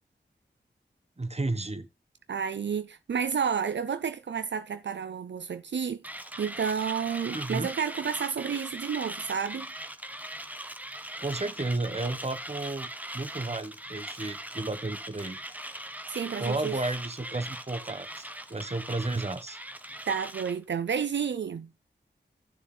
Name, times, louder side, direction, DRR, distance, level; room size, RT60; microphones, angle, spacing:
voice 1, 1.2-1.9 7.3-7.7 11.2-12.9 13.1-15.4 16.4-19.6, right 2 dB, 35° right, 1.2 m, -32 dB
voice 2, 2.3-6.0 6.4-9.7 16.1-16.8 20.1-21.7, right 7 dB, 75° right, 0.5 m, -31 dB
Mechanisms, 6.0-20.6, right 1 dB, 10° right, 1.1 m, -40 dB
15.0 x 6.9 x 2.2 m
wide cardioid pair, 60°, 19 cm